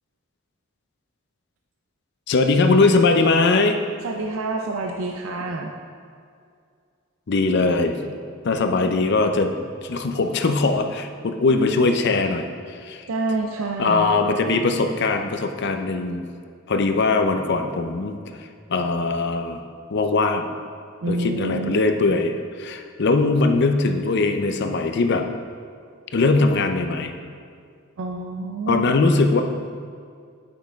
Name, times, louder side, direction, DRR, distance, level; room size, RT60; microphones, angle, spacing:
voice 1, 2.3-3.8 7.3-8.2 8.4-9.5 9.8-13.1 13.8-16.3 16.7-18.2 18.7-19.6 19.9-20.5 21.1-25.3 26.1-27.1 28.7-29.4, left 3 dB, 55° left, 6 dB, 0.5 m, -21 dB
voice 2, 4.0-5.7 13.1-14.1 21.0-21.8 28.0-28.9, right 2 dB, 80° right, 2 dB, 0.5 m, -27 dB
8.7 x 5.8 x 3.5 m, 2.3 s
head